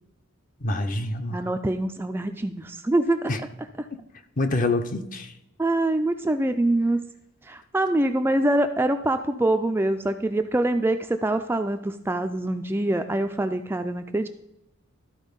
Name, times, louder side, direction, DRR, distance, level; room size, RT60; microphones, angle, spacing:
voice 1, 0.6-1.4 3.3-3.4 4.4-5.3, left 2 dB, 40° left, 8 dB, 0.7 m, -26 dB
voice 2, 1.3-3.3 5.6-7.0 7.5-14.3, right 1 dB, 10° right, 7 dB, 0.3 m, -24 dB
13.0 x 4.4 x 5.2 m, 0.86 s
head